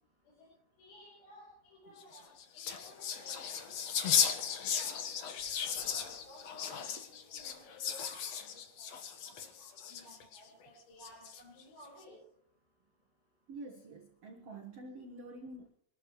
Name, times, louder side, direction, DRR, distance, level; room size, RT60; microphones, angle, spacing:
voice 1, 0.8-4.4 4.7-5.0 5.8-8.9 9.3-12.2, equal, 55° left, -3 dB, 7.0 m, -56 dB
sound 1, 2.0-10.4 11.0-11.6, left 8 dB, 75° left, 1.5 m, -35 dB
voice 2, 13.5-15.7, right 2 dB, 85° right, 3 dB, 1.3 m, -47 dB
25.5 x 12.5 x 3.1 m, 0.66 s
omnidirectional pair, 5.1 m